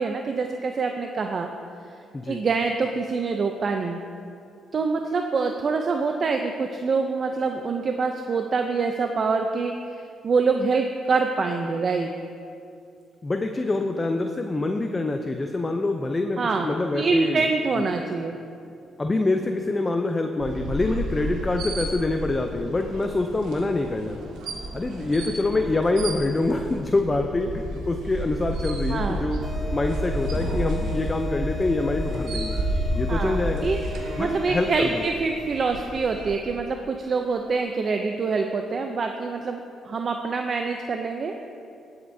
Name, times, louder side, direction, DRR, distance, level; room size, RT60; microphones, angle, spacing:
voice 1, 0.0-1.5 2.3-4.0 4.7-9.7 10.2-12.1 16.4-16.7 16.9-18.4 28.9-29.2 33.1-41.3, right 4 dB, 45° right, 4 dB, 0.5 m, -25 dB
voice 2, 13.2-17.4 17.7-17.8 19.0-24.2 24.7-29.4 29.7-32.6 32.9-33.7 34.2-35.1, left 2 dB, 25° left, 5 dB, 0.5 m, -25 dB
sound 1, 20.4-36.3, right 1 dB, 85° right, 1.5 m, -31 dB
sound 2, 29.4-35.4, left 5 dB, 15° right, 1.4 m, -38 dB
17.5 x 7.9 x 2.7 m, 2.5 s
cardioid pair, 90°, 0 cm